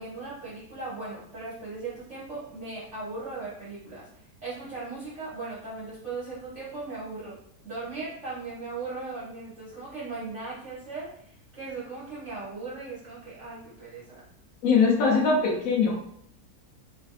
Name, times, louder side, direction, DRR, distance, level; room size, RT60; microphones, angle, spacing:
voice 1, 0.0-4.1 4.4-7.4 7.6-14.2, right 3 dB, 50° right, -11 dB, 1.4 m, -38 dB
voice 2, 14.6-15.9, left 4 dB, 70° left, -2 dB, 1.0 m, -21 dB
3.3 x 2.5 x 2.3 m, 0.67 s
omnidirectional pair, 1.6 m